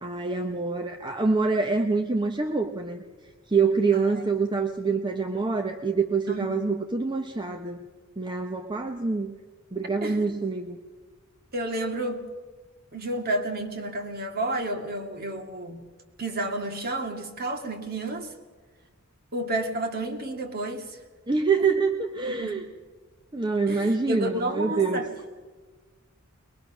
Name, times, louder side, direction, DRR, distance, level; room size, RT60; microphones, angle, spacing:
voice 1, 0.0-3.0 3.5-7.9 8.2-9.3 9.7-10.8 21.3-22.6 23.3-25.0, right 4 dB, 20° right, 5 dB, 0.8 m, -26 dB
voice 2, 3.9-4.3 6.3-6.6 10.0-10.3 11.5-12.2 12.9-15.8 16.2-18.3 19.3-21.0 21.6-21.7 22.3-22.5 23.7-25.1, right 1 dB, 45° right, 4 dB, 2.2 m, -31 dB
22.5 x 21.0 x 6.1 m, 1.4 s
head